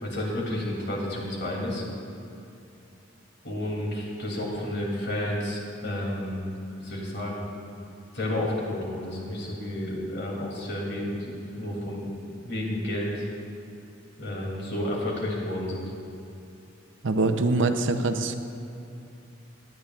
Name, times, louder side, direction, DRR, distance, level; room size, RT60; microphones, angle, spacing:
voice 1, 0.0-1.8 3.4-6.4 6.8-7.4 8.1-12.1 12.4-13.3 14.2-15.9, left 1 dB, 60° left, -3 dB, 2.8 m, -31 dB
voice 2, 17.0-18.3, right 3 dB, 70° right, 7 dB, 0.6 m, -24 dB
18.5 x 10.5 x 2.4 m, 2.8 s
head